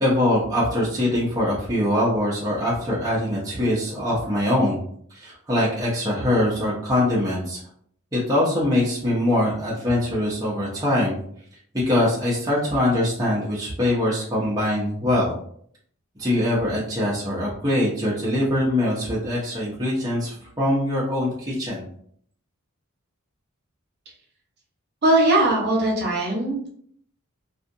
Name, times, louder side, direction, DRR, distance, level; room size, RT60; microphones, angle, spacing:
voice 1, 0.0-4.8 5.1-7.6 8.1-11.2 11.9-15.4 16.2-21.9, left 1 dB, 15° right, -6 dB, 0.6 m, -23 dB
voice 2, 25.0-26.7, right 1 dB, 50° right, -3 dB, 0.9 m, -20 dB
2.6 x 2.4 x 2.5 m, 0.62 s
head